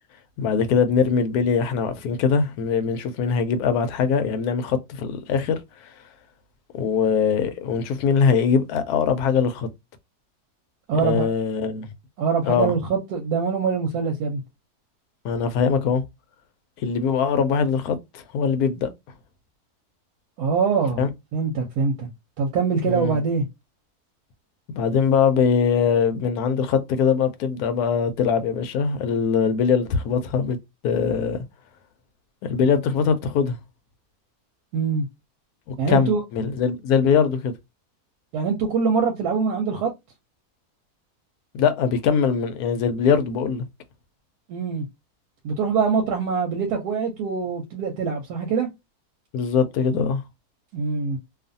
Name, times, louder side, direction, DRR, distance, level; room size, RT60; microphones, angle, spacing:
voice 1, 0.4-5.9 6.7-9.7 10.9-11.9 12.5-12.7 15.2-16.0 16.8-18.9 21.0-21.1 22.8-23.2 24.7-30.6 30.8-31.4 32.4-33.6 35.7-37.5 41.5-43.7 49.3-50.2, left 6 dB, 75° left, 1.0 m, -22 dB
voice 2, 10.9-11.3 12.2-14.4 20.4-22.1 22.4-23.4 34.7-35.1 35.8-36.2 38.3-39.9 44.5-44.9 45.4-48.7 50.7-51.2, right 5 dB, 85° right, 1.1 m, -24 dB
2.6 x 2.4 x 2.5 m
omnidirectional pair, 1.6 m